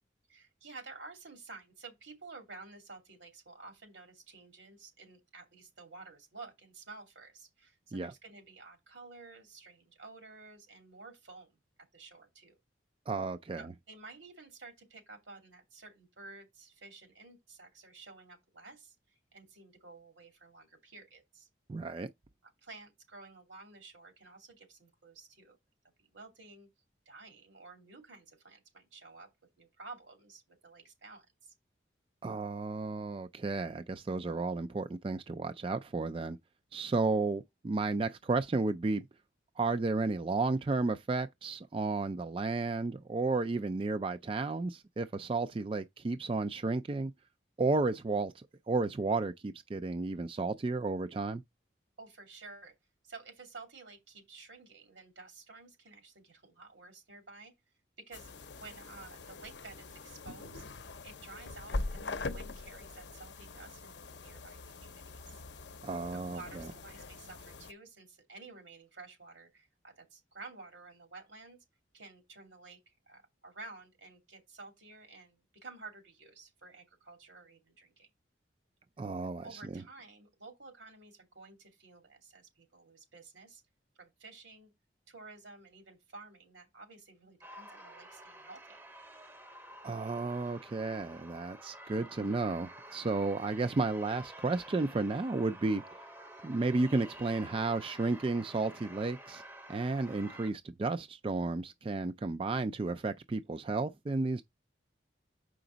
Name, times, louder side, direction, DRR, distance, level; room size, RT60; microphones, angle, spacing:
voice 1, 0.3-11.5 11.9-12.6 13.6-21.5 22.4-25.6 26.0-26.7 27.1-29.3 29.6-31.5 52.0-52.7 53.0-57.5 58.1-58.3 58.6-60.6 61.0-65.4 66.1-71.6 71.9-78.1 79.4-83.6 84.0-84.7 85.1-88.8, right 3 dB, 85° right, 2.7 m, -52 dB
voice 2, 13.1-13.7 21.7-22.1 32.2-36.4 36.7-39.1 39.6-47.1 47.6-51.4 65.8-66.7 79.0-79.8 89.8-95.8 96.4-99.4 99.7-104.4, right 3 dB, 30° right, 0.3 m, -33 dB
sound 1, 58.1-67.7, left 2 dB, 65° left, 0.7 m, -43 dB
sound 2, 87.4-100.5, right 1 dB, 10° right, 0.7 m, -50 dB
6.8 x 5.1 x 3.9 m
head